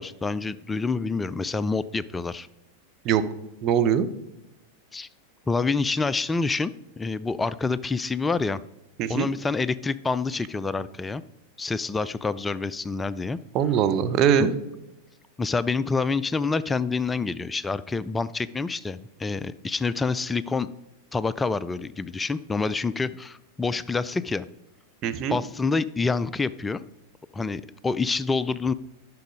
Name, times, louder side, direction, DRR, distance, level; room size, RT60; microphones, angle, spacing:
voice 1, 0.0-2.5 4.9-5.1 5.5-6.7 7.0-8.6 9.1-11.2 11.6-13.4 14.4-14.5 15.4-20.7 21.1-24.5 25.3-26.8 27.3-28.7, left 4 dB, 10° left, 16 dB, 0.3 m, -27 dB
voice 2, 3.6-4.1 9.0-9.3 13.5-14.5 25.0-25.4, right 8 dB, 35° right, 9 dB, 0.7 m, -22 dB
10.5 x 6.1 x 5.3 m, 0.90 s
figure-of-eight pair, 90°, 0 cm